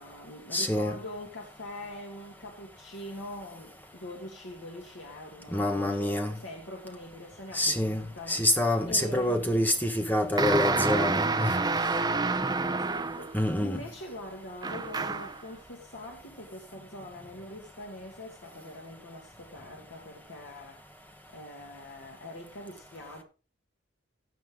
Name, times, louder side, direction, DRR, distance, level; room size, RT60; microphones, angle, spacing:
voice 1, 0.0-8.5 8.9-9.8 11.7-20.8 21.3-23.2, left 1 dB, 75° left, 2.3 m, -43 dB
voice 2, 0.5-1.0 5.5-6.3 7.5-8.0 8.3-11.6 13.3-13.8, left 1 dB, 10° left, 1.3 m, -26 dB
sound 1, 10.4-13.4 14.6-15.4, right 3 dB, 20° right, 0.7 m, -28 dB
16.5 x 5.7 x 3.7 m
head